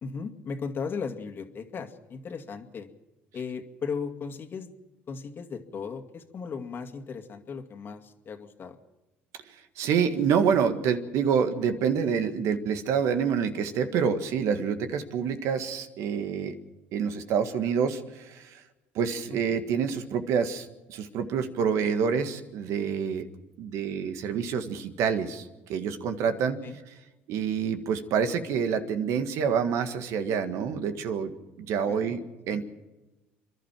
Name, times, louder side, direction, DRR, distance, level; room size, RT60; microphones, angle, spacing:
voice 1, 0.0-2.9 3.3-4.7 5.1-8.8 19.3-19.6 26.6-26.8 31.9-32.1 32.5-32.6, left 5 dB, 40° left, 7 dB, 2.2 m, -36 dB
voice 2, 9.8-16.5 16.9-18.6 18.9-23.3 23.6-26.6 27.3-31.3 31.6-32.6, right 7 dB, 65° right, 8 dB, 1.7 m, -27 dB
29.5 x 12.0 x 7.5 m, 1.1 s
supercardioid pair, 85°, 5 cm